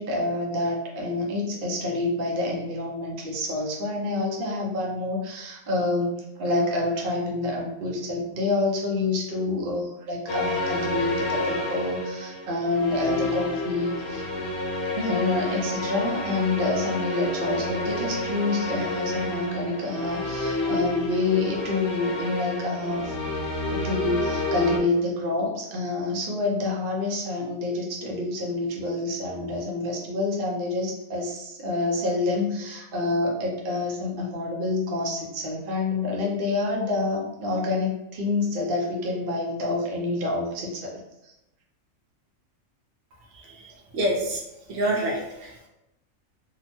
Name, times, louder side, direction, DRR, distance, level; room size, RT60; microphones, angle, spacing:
voice 1, 0.0-6.1 6.4-14.2 15.0-23.1 23.7-41.0 41.2-41.3, left 2 dB, 50° right, -2 dB, 0.7 m, -27 dB
sound 1, 10.3-24.8, left 2 dB, 65° left, 0.9 m, -29 dB
voice 2, 43.9-44.4 44.7-45.7, right 1 dB, 75° right, -1 dB, 0.9 m, -26 dB
2.8 x 2.1 x 2.9 m, 0.91 s
omnidirectional pair, 1.4 m